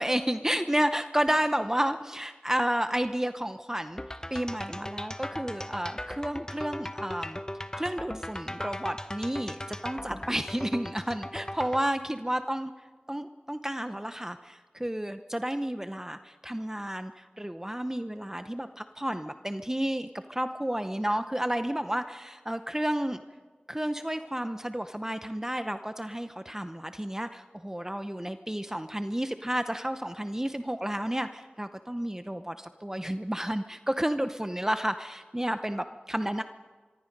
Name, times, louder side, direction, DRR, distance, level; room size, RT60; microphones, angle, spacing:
voice 1, 0.0-4.0 4.3-7.4 7.7-12.7 13.1-23.2 23.7-36.4, right 1 dB, 15° right, 9 dB, 0.7 m, -31 dB
sound 1, 4.0-11.9, left 1 dB, 20° left, 1.0 m, -38 dB
25.0 x 23.5 x 5.3 m, 1.5 s
wide cardioid pair, 50°, 3 cm